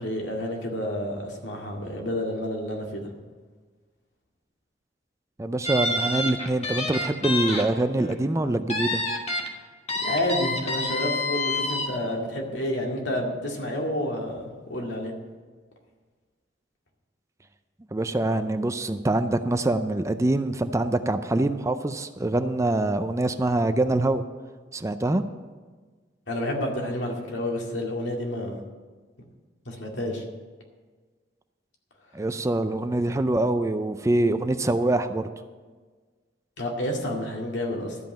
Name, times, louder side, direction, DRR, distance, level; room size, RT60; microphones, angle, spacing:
voice 1, 0.0-3.0 10.0-14.4 14.7-15.1 26.3-28.6 29.7-30.2 36.6-38.0, left 1 dB, 80° left, 0 dB, 2.2 m, -29 dB
voice 2, 5.4-9.0 17.9-24.2 24.7-25.2 32.1-35.2, right 2 dB, 15° right, 10 dB, 0.4 m, -24 dB
sound 1, 5.6-7.6 8.0-8.1 8.7-9.5 9.9-11.9, left 2 dB, 35° left, 1.4 m, -28 dB
12.5 x 5.8 x 8.6 m, 1.4 s
head